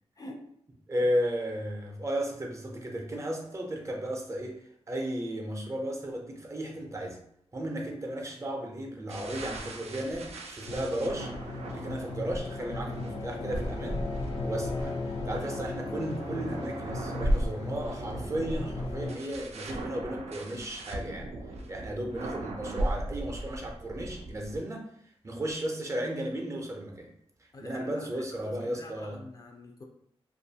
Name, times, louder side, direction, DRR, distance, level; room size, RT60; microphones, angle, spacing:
voice 1, 0.9-7.2 7.5-11.3 11.7-14.0 14.4-21.3 21.7-24.9 25.2-27.1 27.4-29.2, right 1 dB, 30° right, 0 dB, 0.5 m, -34 dB
sound 1, 9.1-24.6, right 1 dB, 85° right, 0.4 m, -37 dB
sound 2, 10.7-19.2, left 2 dB, 75° left, 0.6 m, -37 dB
voice 2, 27.5-27.9 28.6-29.8, left 1 dB, 35° left, 1 dB, 0.4 m, -45 dB
2.5 x 2.3 x 2.7 m, 0.72 s
wide cardioid pair, 110°, 11 cm